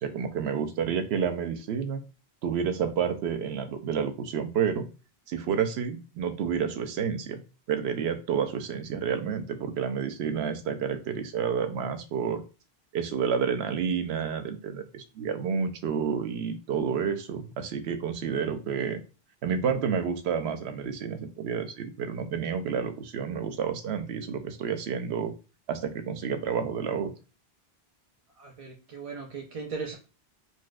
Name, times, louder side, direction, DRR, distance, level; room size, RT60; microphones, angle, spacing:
voice 1, 0.0-2.0 2.4-4.9 5.3-7.4 7.7-12.4 12.9-19.0 19.4-25.3 25.7-27.1, right 7 dB, 85° right, 7 dB, 0.8 m, -30 dB
voice 2, 28.4-29.9, right 4 dB, 45° right, -1 dB, 0.6 m, -38 dB
4.0 x 2.4 x 2.3 m, 0.32 s
omnidirectional pair, 1.0 m